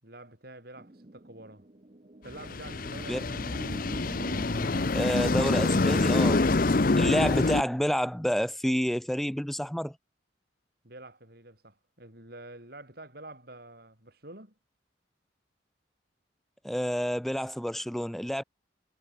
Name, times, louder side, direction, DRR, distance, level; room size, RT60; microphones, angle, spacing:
voice 1, 0.0-1.7 2.2-3.5 10.8-14.5, right 2 dB, 50° right, 7.3 m, -48 dB
sound 1, 0.8-7.6, right 1 dB, 35° right, 1.0 m, -46 dB
sound 2, 2.3-7.6, left 3 dB, 45° left, 0.7 m, -26 dB
voice 2, 4.9-6.4 6.9-10.0 16.6-18.4, equal, ahead, 0.3 m, -29 dB
head